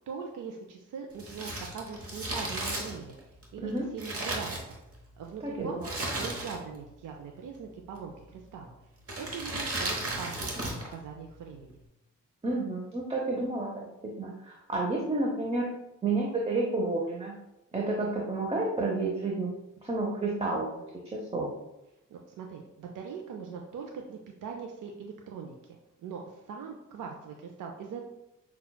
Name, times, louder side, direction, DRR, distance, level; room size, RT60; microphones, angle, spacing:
voice 1, 0.0-4.8 5.2-8.7 9.2-11.7 22.1-28.0, right 6 dB, 75° right, 2 dB, 0.5 m, -41 dB
Crumpling crinkling, 1.1-5.1 5.8-6.8 7.1-7.2 8.0-8.4 9.0-10.9 11.2-11.3, right 1 dB, 45° right, 1.0 m, -35 dB
voice 2, 5.4-5.9 12.4-13.9 14.2-15.7 16.0-17.4 17.7-19.5 19.8-20.8 21.1-21.5, right 2 dB, 20° right, -2 dB, 0.7 m, -30 dB
5.6 x 2.3 x 2.2 m, 0.91 s
cardioid pair, 55°, 32 cm